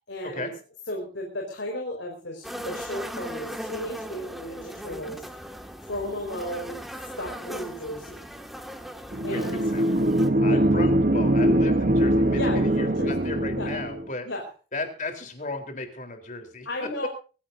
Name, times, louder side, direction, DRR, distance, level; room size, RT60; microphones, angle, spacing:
voice 1, 0.1-0.5 0.9-5.5 5.8-8.3 9.2-9.6 10.4-10.7 12.3-13.1 13.5-13.7 14.2-14.4 16.6-17.1, left 1 dB, 80° left, 1 dB, 4.8 m, -34 dB
sound 1, 2.4-10.3, equal, ahead, 1.8 m, -38 dB
voice 2, 9.1-9.9 10.4-14.3 14.7-17.1, left 2 dB, 40° left, 6 dB, 3.7 m, -35 dB
sound 2, 9.1-14.1, right 1 dB, 50° right, 1.0 m, -22 dB
24.0 x 15.5 x 2.7 m, 0.36 s
head